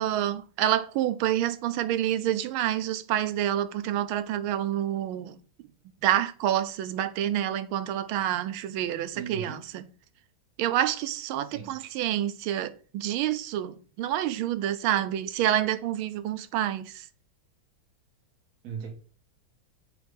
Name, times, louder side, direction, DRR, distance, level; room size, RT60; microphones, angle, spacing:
voice 1, 0.0-5.4 6.0-9.8 10.6-17.0, right 11 dB, 85° right, 1.4 m, -28 dB
voice 2, 9.1-9.6 11.4-11.8 18.6-18.9, right 7 dB, 50° right, 1.8 m, -38 dB
7.7 x 2.7 x 5.2 m
omnidirectional pair, 2.2 m